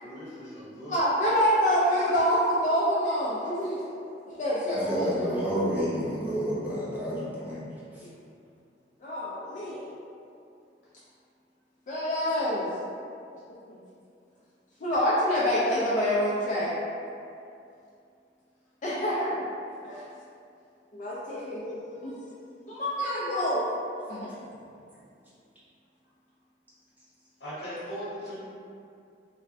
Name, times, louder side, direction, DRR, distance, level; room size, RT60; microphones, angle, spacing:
voice 1, 0.0-1.0 27.4-28.3, equal, 75° left, -11 dB, 0.9 m, -39 dB
voice 2, 0.9-3.9 4.4-5.3 9.0-9.8 11.9-12.7 13.7-13.8 14.8-16.7 18.8-19.3 19.8-20.0 20.9-22.2 22.7-23.7 24.1-24.3, equal, 45° left, -9 dB, 0.4 m, -26 dB
voice 3, 4.7-7.6, equal, 10° right, -9 dB, 0.7 m, -30 dB
3.2 x 2.0 x 2.6 m, 2.5 s
head